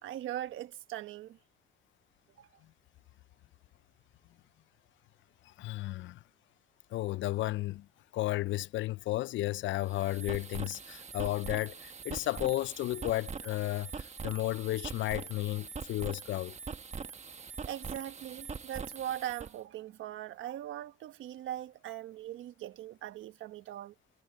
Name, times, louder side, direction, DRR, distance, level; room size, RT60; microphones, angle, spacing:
voice 1, 0.0-1.4 2.4-2.5 17.6-23.9, right 12 dB, 85° right, 1.3 m, -40 dB
voice 2, 5.4-6.2 6.9-7.9 8.1-16.6, left 16 dB, 75° left, 0.4 m, -33 dB
sound 1, 9.8-19.5, right 5 dB, 35° right, 1.3 m, -43 dB
cardioid pair, 90°, 20 cm